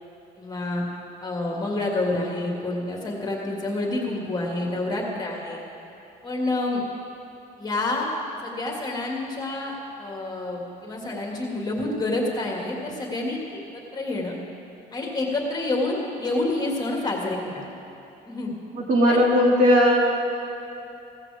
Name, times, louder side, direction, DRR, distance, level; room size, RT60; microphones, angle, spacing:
voice 1, 0.4-0.8 1.2-5.6 6.2-6.8 7.6-8.1 8.4-14.4 14.9-17.7 18.3-18.5 19.1-19.2, left 2 dB, 25° left, -1 dB, 2.2 m, -28 dB
voice 2, 18.7-20.0, left 1 dB, 55° right, -2 dB, 2.4 m, -18 dB
16.0 x 14.0 x 3.6 m, 2.9 s
cardioid pair, 110°, 17 cm